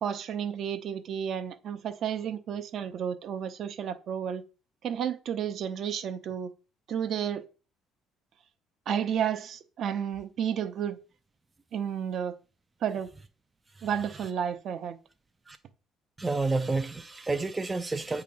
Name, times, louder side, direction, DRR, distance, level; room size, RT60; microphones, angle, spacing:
voice 1, 0.0-4.4 4.8-6.5 6.9-7.4 8.9-11.0 11.7-12.4 12.8-13.1 13.8-15.0, right 8 dB, 50° right, 0.7 m, -31 dB
voice 2, 16.2-18.2, right 3 dB, 15° right, 0.3 m, -29 dB
8.5 x 2.9 x 5.2 m
cardioid pair, 150°, 0 cm